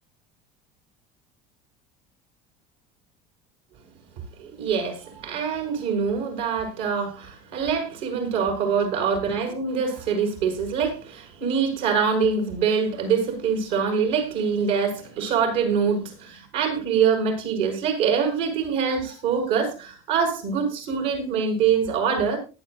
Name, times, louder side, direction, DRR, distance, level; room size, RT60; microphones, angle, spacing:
voice 1, 4.4-22.4, right 6 dB, 75° right, 3 dB, 6.9 m, -24 dB
19.0 x 11.0 x 2.6 m, 0.31 s
supercardioid pair, 125°, 19 cm